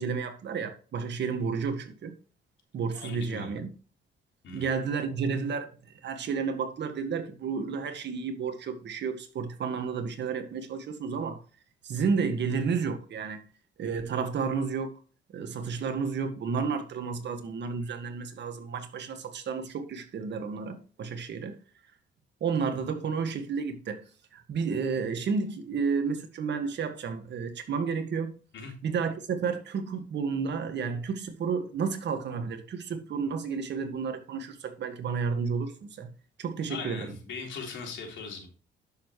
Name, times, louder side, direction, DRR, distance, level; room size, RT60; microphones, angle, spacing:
voice 1, 0.0-2.1 2.7-3.7 4.5-5.7 6.0-11.4 11.8-13.4 13.8-14.9 15.3-21.6 22.4-24.0 24.3-28.3 28.8-36.1 36.4-37.1, right 5 dB, 60° right, 1.8 m, -31 dB
voice 2, 2.9-3.6 4.4-4.7 28.5-28.7 36.7-38.5, left 5 dB, 70° left, 4.0 m, -39 dB
10.5 x 7.2 x 3.1 m
cardioid pair, 90°, 20 cm